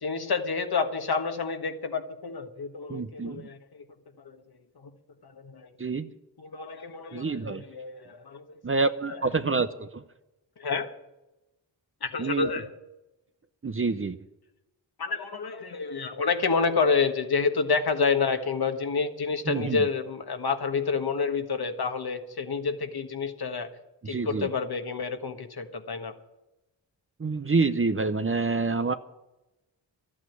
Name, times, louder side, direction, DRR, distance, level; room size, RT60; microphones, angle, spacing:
voice 1, 0.0-3.8 4.2-4.4 4.7-4.9 5.2-5.7 6.4-8.6 9.1-9.2 10.6-10.9 12.0-12.7 15.0-23.7 24.0-26.1, left 5 dB, 55° left, 6 dB, 1.6 m, -29 dB
voice 2, 2.9-3.5 5.8-6.1 7.1-7.6 8.6-10.0 12.2-12.5 13.6-14.2 19.5-19.8 24.0-24.5 27.2-28.9, right 4 dB, 30° right, 11 dB, 0.8 m, -27 dB
12.5 x 8.7 x 9.4 m, 0.97 s
cardioid pair, 55°, 44 cm